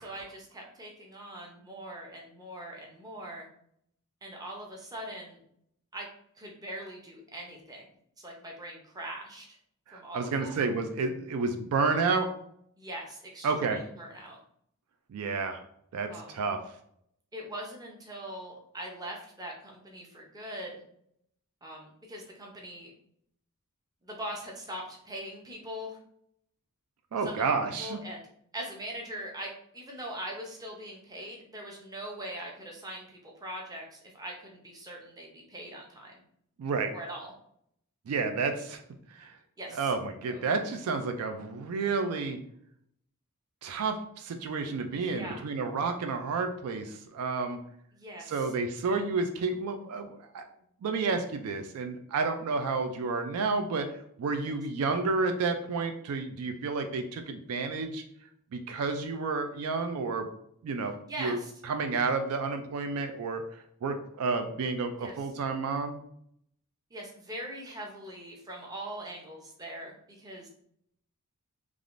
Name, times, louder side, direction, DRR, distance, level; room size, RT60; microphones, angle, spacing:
voice 1, 0.0-3.5 4.2-5.4 5.9-6.1 6.4-7.8 8.2-9.6 9.9-10.6 12.8-14.4 16.1-16.4 17.3-20.8 21.6-22.9 24.0-26.0 27.2-27.4 27.8-28.3 28.5-36.2 36.9-37.3 39.6-39.9 40.3-40.4 45.0-45.5 47.9-48.5 54.4-54.5 61.1-61.5 65.0-65.1 66.9-70.5, right 1 dB, 15° right, -1 dB, 0.6 m, -42 dB
voice 2, 9.9-12.3 13.4-13.8 15.1-15.6 15.9-16.6 27.1-28.0 36.6-36.9 38.1-38.8 39.1-39.3 39.7-42.4 43.6-47.6 48.3-50.5 50.8-53.9 54.2-58.0 58.5-60.3 60.6-60.9 61.2-61.4 61.6-66.0, right 4 dB, 75° right, 6 dB, 0.4 m, -30 dB
3.3 x 2.4 x 2.5 m, 0.71 s
head